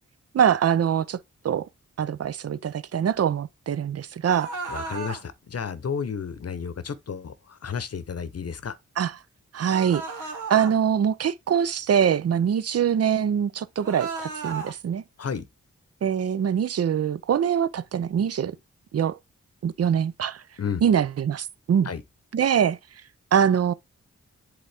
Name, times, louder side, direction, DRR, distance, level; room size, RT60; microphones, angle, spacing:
voice 1, 0.3-1.2 1.4-1.7 2.0-4.5 9.0-9.1 9.5-10.0 10.5-15.0 16.0-18.5 18.9-19.1 19.6-20.4 20.8-21.9 22.3-22.8 23.3-23.7, right 8 dB, 55° right, 0.5 m, -23 dB
sound 1, 4.2-5.2 9.7-10.7 13.8-14.7, right 4 dB, 85° right, 1.2 m, -34 dB
voice 2, 4.7-8.8 15.2-15.4 20.6-20.8 21.8-22.0, left 6 dB, 55° left, 0.8 m, -32 dB
7.9 x 3.7 x 3.4 m
cardioid pair, 50°, 30 cm